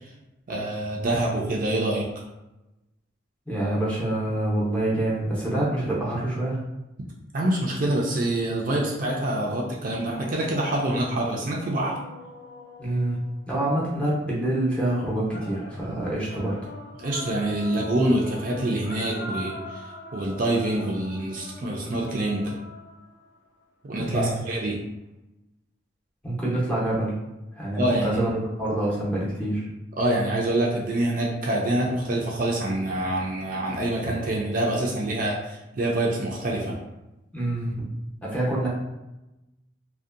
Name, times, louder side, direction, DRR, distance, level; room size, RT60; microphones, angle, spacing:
voice 1, 0.5-2.1 7.3-12.0 17.0-22.5 23.8-24.8 27.8-28.2 30.0-36.8, right 1 dB, 45° right, -2 dB, 0.4 m, -26 dB
voice 2, 3.5-6.6 12.8-13.2 13.5-16.6 23.9-24.4 26.2-27.2 27.5-29.7 37.3-37.9 38.2-38.7, right 1 dB, 5° left, -7 dB, 0.6 m, -26 dB
sound 1, 10.1-13.9 15.3-23.4, left 1 dB, 90° left, 0.5 m, -42 dB
2.6 x 2.1 x 2.4 m, 0.96 s
head